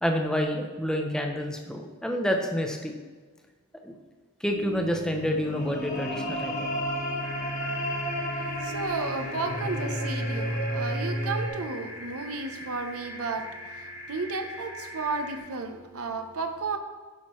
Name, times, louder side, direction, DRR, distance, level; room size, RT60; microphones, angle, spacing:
voice 1, 0.0-2.9 3.8-4.0 4.4-6.7, equal, 5° left, 3 dB, 0.6 m, -28 dB
sound 1, 4.5-11.5, equal, 35° left, 1.2 m, -31 dB
sound 2, 7.2-15.4, left 1 dB, 55° right, 2.2 m, -42 dB
voice 2, 8.4-16.8, right 4 dB, 80° right, 7 dB, 0.7 m, -33 dB
9.9 x 6.0 x 3.1 m, 1.4 s
head